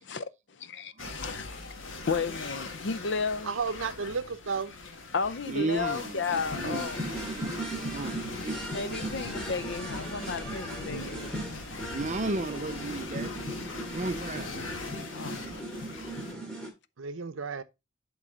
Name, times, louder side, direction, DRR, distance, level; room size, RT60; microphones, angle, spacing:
voice 1, 0.0-1.7 2.1-3.5 5.1-7.0 8.7-11.6 15.1-15.5, left 5 dB, 60° left, 0.5 m, -33 dB
sound 1, 1.0-16.3, left 3 dB, 75° left, 1.3 m, -41 dB
voice 2, 3.4-4.8 17.0-17.6, right 5 dB, 85° right, 0.7 m, -33 dB
voice 3, 5.5-6.2 6.6-8.2 8.4-8.6 11.9-13.3 13.9-14.8, right 3 dB, 35° right, 0.6 m, -34 dB
sound 2, 6.3-16.7, right 1 dB, 5° left, 2.4 m, -37 dB
10.5 x 4.0 x 3.7 m
head